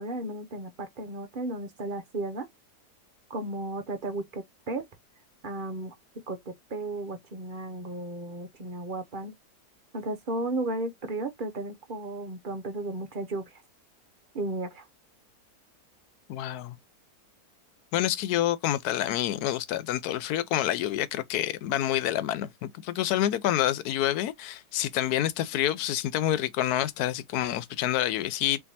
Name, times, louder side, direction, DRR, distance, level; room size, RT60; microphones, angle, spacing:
voice 1, 0.0-2.5 3.3-4.8 5.4-6.0 6.3-9.3 9.9-13.6 14.3-14.8, right 2 dB, 50° right, 0.6 m, -34 dB
voice 2, 16.3-16.8 17.9-28.6, left 12 dB, 75° left, 1.1 m, -28 dB
4.4 x 3.4 x 2.7 m
omnidirectional pair, 1.8 m